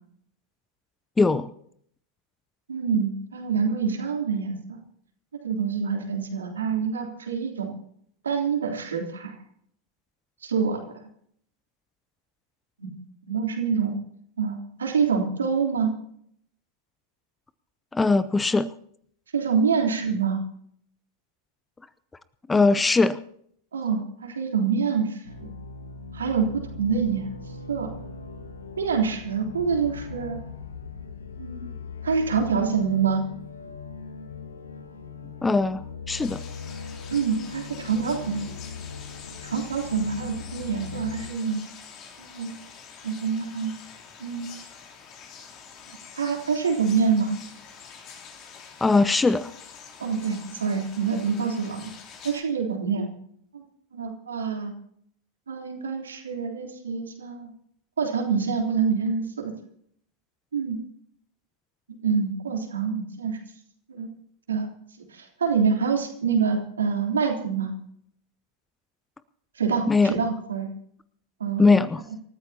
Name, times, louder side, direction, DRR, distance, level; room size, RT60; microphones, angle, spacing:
voice 1, 1.2-1.5 17.9-18.7 22.5-23.2 35.4-36.4 48.8-49.5 69.9-70.1 71.6-72.0, left 3 dB, 10° left, 17 dB, 0.6 m, -20 dB
voice 2, 2.7-4.8 5.4-7.7 8.2-9.3 10.4-10.8 12.8-12.9 13.2-13.9 14.4-15.9 19.3-20.4 23.7-25.5 26.1-27.3 27.7-27.9 28.8-30.4 31.4-31.7 32.0-33.2 37.1-38.5 39.4-41.6 42.2-42.5 43.0-43.7 44.2-44.5 46.2-47.4 50.0-51.9 52.2-53.1 53.5-53.6 53.9-54.7 55.5-57.5 58.0-59.5 60.5-60.8 62.0-63.4 63.9-64.1 64.5-64.7 65.1-67.7 69.5-70.7 71.4-71.6, right 6 dB, 70° right, 1 dB, 3.5 m, -26 dB
sound 1, 25.2-41.3, left 5 dB, 70° left, 1.5 m, -40 dB
sound 2, 36.1-52.4, left 6 dB, 35° left, 3.3 m, -46 dB
27.5 x 14.0 x 2.9 m, 0.66 s
figure-of-eight pair, 90°, 0 cm